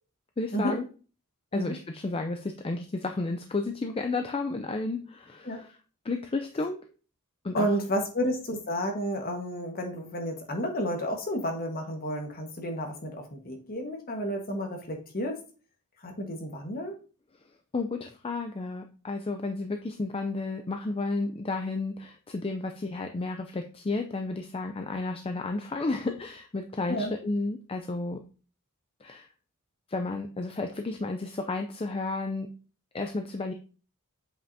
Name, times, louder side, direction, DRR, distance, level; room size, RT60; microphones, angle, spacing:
voice 1, 0.4-0.8 1.5-5.7 6.0-6.8 7.4-7.7 17.7-28.2 29.0-29.3 29.9-32.5 32.9-33.5, left 3 dB, 25° left, 5 dB, 0.5 m, -32 dB
voice 2, 7.5-15.4 16.0-16.9 26.9-27.1, equal, 40° left, 3 dB, 1.5 m, -31 dB
7.9 x 5.5 x 2.7 m, 0.37 s
head